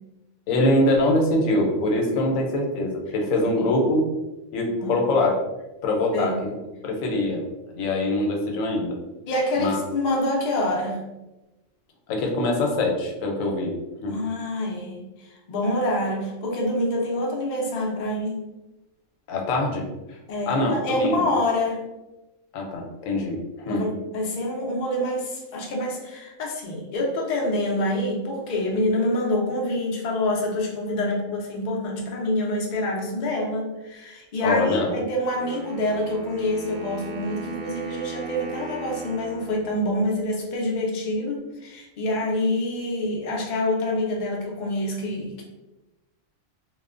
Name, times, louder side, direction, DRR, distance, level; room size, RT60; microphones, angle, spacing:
voice 1, 0.5-4.1 4.5-5.4 5.8-6.3 6.8-7.4 7.7-8.9 9.6-9.8 12.1-13.8 14.0-14.2 19.3-20.2 20.5-21.3 22.5-23.9 34.4-34.9, left 1 dB, 90° left, 1 dB, 1.0 m, -23 dB
voice 2, 9.3-11.0 14.1-15.0 15.5-18.3 20.3-21.8 23.7-45.4, left 1 dB, 55° left, -1 dB, 0.5 m, -26 dB
Wind instrument woodwind instrument, 35.4-40.4, right 3 dB, 90° right, 1.0 m, -37 dB
3.0 x 2.1 x 2.4 m, 1.0 s
omnidirectional pair, 1.3 m